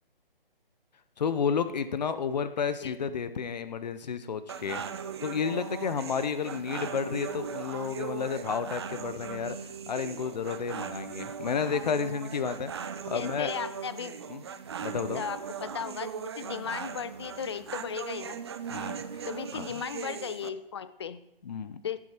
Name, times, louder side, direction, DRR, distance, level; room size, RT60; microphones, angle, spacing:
voice 1, 1.2-4.8 5.2-9.6 9.9-12.7 13.1-13.5 14.3-14.4 14.8-15.2 18.7-19.0 19.5-19.8 21.4-21.8, left 6 dB, 45° left, 12 dB, 0.9 m, -31 dB
sound 1, 4.5-20.5, right 7 dB, 30° right, 0.5 m, -39 dB
voice 2, 13.1-14.2 15.1-18.4 19.3-21.2 21.8-22.0, left 7 dB, 30° left, 15 dB, 0.5 m, -36 dB
16.0 x 8.6 x 4.4 m, 0.86 s
figure-of-eight pair, 140°, 29 cm